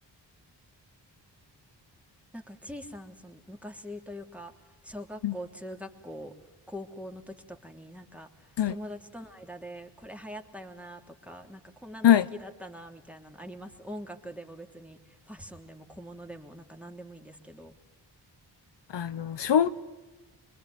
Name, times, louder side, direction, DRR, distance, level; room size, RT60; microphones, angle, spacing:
voice 1, 2.3-4.5 4.8-6.3 6.7-8.3 8.6-12.1 12.4-15.0 15.3-17.7, equal, 5° right, 4 dB, 3.1 m, -43 dB
voice 2, 18.9-19.7, left 10 dB, 75° left, 12 dB, 1.0 m, -22 dB
26.0 x 22.5 x 9.7 m, 1.2 s
cardioid pair, 75°, 43 cm